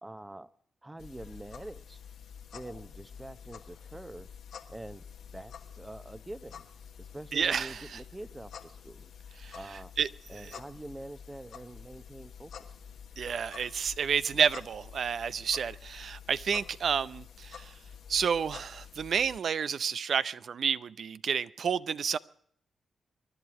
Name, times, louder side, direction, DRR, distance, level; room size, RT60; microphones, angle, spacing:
voice 1, 0.0-0.5 0.8-2.0 2.5-4.3 4.7-5.0 5.3-6.7 7.0-9.1 9.5-9.9 10.3-12.7, right 1 dB, 20° right, 0.9 m, -45 dB
sound 1, 1.0-19.4, left 7 dB, 75° left, 1.2 m, -49 dB
voice 2, 7.3-8.0 9.4-9.6 10.0-10.1 10.4-10.6 13.2-17.7 18.1-22.2, right 7 dB, 65° right, 0.6 m, -30 dB
24.0 x 11.0 x 4.8 m
supercardioid pair, 45°, 0 cm